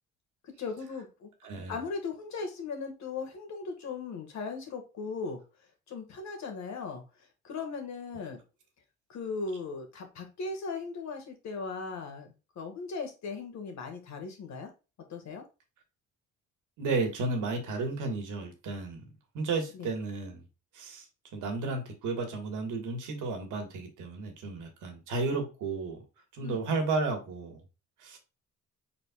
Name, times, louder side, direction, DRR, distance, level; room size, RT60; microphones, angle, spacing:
voice 1, 0.6-1.3 1.7-5.4 5.9-7.0 7.4-8.4 9.1-14.7 15.1-15.4 19.7-19.9 26.4-26.8, left 4 dB, 65° left, 1.6 m, -38 dB
voice 2, 1.4-1.8 16.8-19.0 19.3-20.4 20.7-21.0 21.3-26.0 26.3-27.6 28.0-28.2, right 3 dB, 85° right, 1.6 m, -33 dB
5.1 x 4.3 x 2.3 m
cardioid pair, 90°, 30 cm